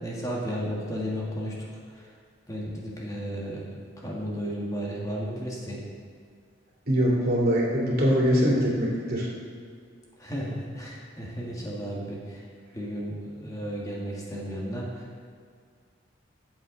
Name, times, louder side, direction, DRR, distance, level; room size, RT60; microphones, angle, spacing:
voice 1, 0.0-1.7 2.5-3.6 4.0-5.8 10.2-12.4 12.7-15.0, equal, 20° left, -4 dB, 1.7 m, -33 dB
voice 2, 6.9-9.3, equal, 50° right, -4 dB, 2.7 m, -23 dB
14.0 x 7.9 x 3.9 m, 2.1 s
head